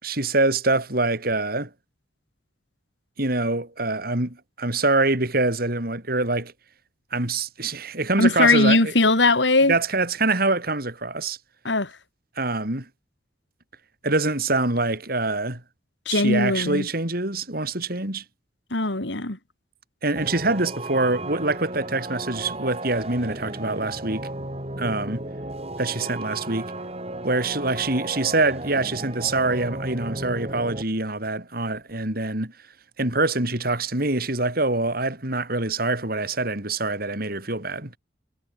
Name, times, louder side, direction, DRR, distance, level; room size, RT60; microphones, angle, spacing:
voice 1, 0.0-1.7 3.2-6.5 7.1-8.9 9.7-11.4 12.4-12.9 14.0-15.6 16.1-18.2 20.0-24.3 24.8-25.2 25.8-26.7 27.2-32.5 33.0-37.9, right 2 dB, 55° right, 5.0 m, -25 dB
voice 2, 8.2-9.7 11.6-11.9 16.1-16.9 18.7-19.4, left 2 dB, 80° left, 3.1 m, -20 dB
sound 1, 20.2-30.8, right 2 dB, 35° right, 7.6 m, -34 dB
head